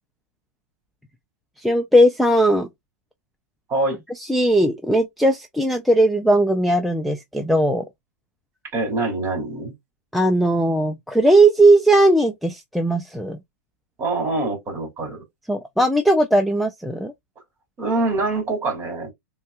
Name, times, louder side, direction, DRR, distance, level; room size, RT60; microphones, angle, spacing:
voice 1, 1.6-2.7 4.3-7.8 10.1-13.4 15.5-17.1, right 1 dB, ahead, 0.5 m, -18 dB
voice 2, 8.7-9.7 14.0-15.2 17.8-19.1, right 2 dB, 25° right, 2.7 m, -24 dB
5.3 x 2.4 x 2.3 m
hypercardioid pair, 120°, 8 cm